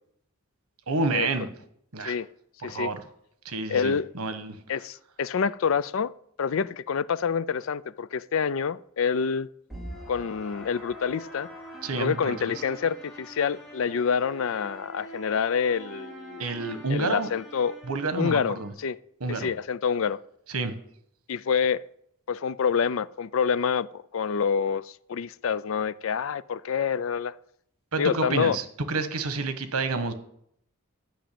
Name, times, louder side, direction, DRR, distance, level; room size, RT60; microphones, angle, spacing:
voice 1, 0.9-1.5 1.9-2.2 2.6-3.0 3.4-4.6 11.8-12.6 16.4-17.3 17.9-18.7 19.2-19.5 20.5-20.7 27.9-30.1, right 3 dB, 90° right, 1.3 m, -29 dB
voice 2, 3.7-4.1 4.7-6.1 6.4-9.5 10.1-11.5 12.0-16.5 16.9-17.8 18.2-19.0 19.3-20.2 21.3-21.8 22.3-27.3 28.0-28.6, left 6 dB, 65° left, 0.4 m, -27 dB
sound 1, 9.7-18.7, equal, ahead, 2.7 m, -44 dB
11.5 x 6.2 x 8.6 m
head